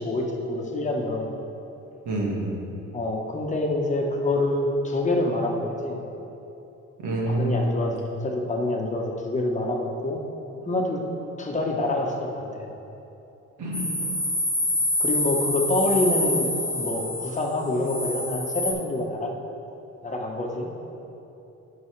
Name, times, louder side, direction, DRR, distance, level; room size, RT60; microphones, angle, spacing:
voice 1, 0.0-1.3 2.9-6.0 7.2-7.9 8.2-10.2 10.6-11.0 11.4-12.7 15.0-16.5 16.8-19.3 20.0-20.7, left 2 dB, 25° left, 0 dB, 1.1 m, -26 dB
voice 2, 2.0-2.5 7.0-7.9 13.6-14.0, right 1 dB, 75° right, -2 dB, 1.7 m, -26 dB
sound 1, 13.7-18.7, left 1 dB, 5° right, 1.4 m, -27 dB
11.0 x 5.7 x 3.3 m, 2.9 s
cardioid pair, 90°, 30 cm